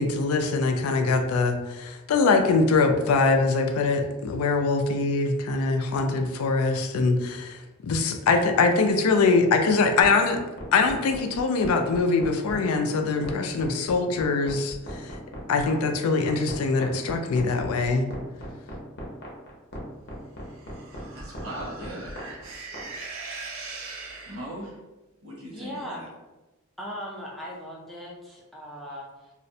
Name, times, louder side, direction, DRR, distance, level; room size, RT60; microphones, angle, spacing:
voice 1, 0.0-7.6 7.8-10.4 10.7-14.8 15.5-18.1, left 4 dB, 90° left, 5 dB, 0.3 m, -23 dB
sound 1, 10.0-22.8, equal, 50° left, 0.6 m, -38 dB
sound 2, 20.4-24.7, right 3 dB, 65° right, 0.4 m, -41 dB
voice 2, 21.1-22.1 24.3-24.7 25.2-26.1, right 1 dB, 85° right, -5 dB, 1.0 m, -38 dB
voice 3, 25.5-26.1 26.8-29.3, equal, ahead, -4 dB, 0.4 m, -38 dB
2.4 x 2.0 x 2.6 m, 1.1 s
head